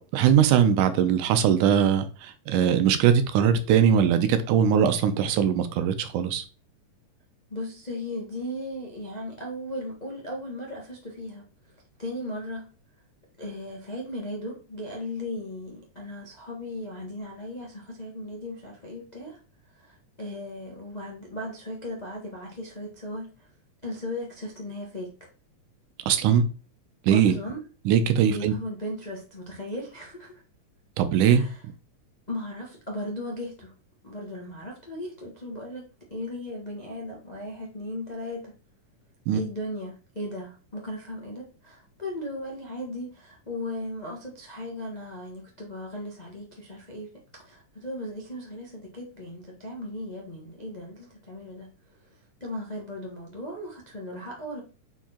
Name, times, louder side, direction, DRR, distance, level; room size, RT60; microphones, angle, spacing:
voice 1, 0.0-6.4 26.1-26.4 27.0-27.3 27.9-28.5 31.0-31.5 39.3-39.4, right 8 dB, 85° right, 2.2 m, -21 dB
voice 2, 7.5-11.4 12.0-12.7 13.4-19.4 19.7-23.5 23.8-25.3 27.1-27.6 28.2-30.4 31.3-31.6 32.3-33.7 34.0-38.5 39.3-51.7 52.0-52.1 52.4-54.6, left 1 dB, 45° left, 0.5 m, -37 dB
5.6 x 4.7 x 4.3 m
omnidirectional pair, 3.7 m